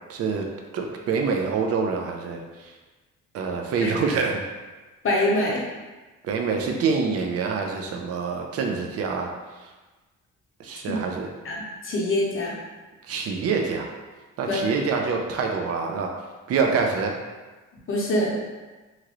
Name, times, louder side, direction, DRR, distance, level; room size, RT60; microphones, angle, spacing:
voice 1, 0.1-0.5 0.7-2.7 3.3-4.4 6.2-9.3 10.6-11.3 13.1-13.9 14.4-16.1 16.5-17.2, right 5 dB, 55° right, 2 dB, 0.5 m, -26 dB
voice 2, 5.0-5.6 10.9-11.0 11.4-12.5 14.5-14.6 17.9-18.3, left 1 dB, 45° left, -3 dB, 0.8 m, -24 dB
2.9 x 2.5 x 3.0 m, 1.2 s
cardioid pair, 90°, 30 cm